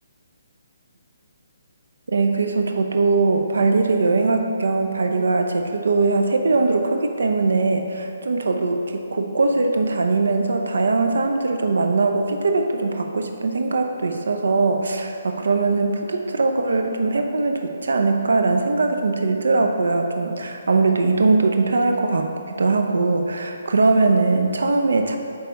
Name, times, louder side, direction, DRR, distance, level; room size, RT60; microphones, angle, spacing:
voice 1, 2.1-25.2, right 3 dB, 90° right, 5 dB, 0.7 m, -21 dB
8.8 x 3.5 x 5.2 m, 2.4 s
hypercardioid pair, 170°, 0 cm